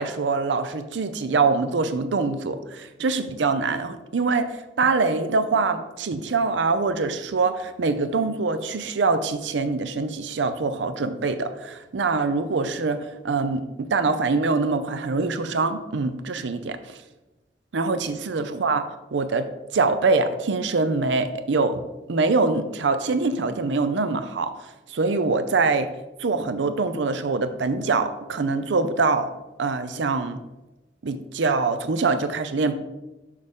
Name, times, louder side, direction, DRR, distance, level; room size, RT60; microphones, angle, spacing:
voice 1, 0.0-17.0 17.7-21.8 22.1-25.9 26.2-29.3 29.6-30.4 31.0-32.7, right 4 dB, 80° right, 11 dB, 0.5 m, -24 dB
6.4 x 6.4 x 3.6 m, 1.0 s
head